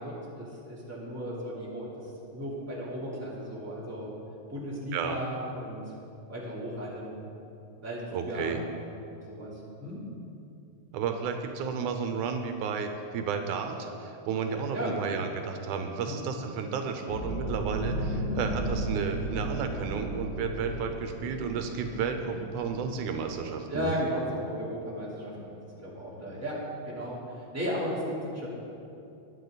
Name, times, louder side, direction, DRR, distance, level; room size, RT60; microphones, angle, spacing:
voice 1, 0.0-2.1 2.3-4.1 4.5-5.8 6.3-7.2 7.8-9.0 9.3-10.0 14.7-15.0 16.0-16.2 21.9-22.1 23.7-26.6 26.8-28.5, equal, 5° right, -7 dB, 3.1 m, -35 dB
voice 2, 8.1-8.6 10.9-23.9, right 6 dB, 85° right, 5 dB, 2.4 m, -32 dB
sound 1, 17.1-23.8, right 1 dB, 60° left, 2.8 m, -35 dB
22.0 x 8.9 x 4.1 m, 2.7 s
omnidirectional pair, 3.4 m